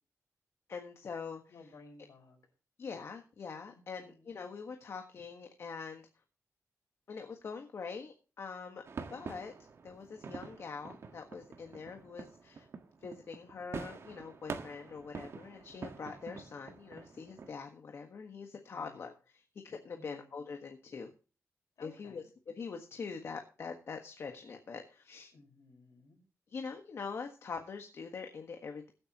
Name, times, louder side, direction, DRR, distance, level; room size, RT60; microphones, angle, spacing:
voice 1, 0.7-1.4 2.8-6.1 7.1-8.8 9.1-9.5 9.8-12.7 13.0-21.1 21.8-25.3 26.5-28.9, left 5 dB, 55° left, 5 dB, 1.5 m, -44 dB
voice 2, 1.5-2.4 3.7-4.3 18.7-19.1 19.9-20.3 21.8-22.3 25.3-26.2, left 3 dB, 85° left, 2 dB, 5.0 m, -57 dB
sound 1, 8.8-17.5, right 5 dB, 55° right, 1.5 m, -46 dB
21.5 x 8.7 x 3.0 m, 0.35 s
wide cardioid pair, 170°, 5 cm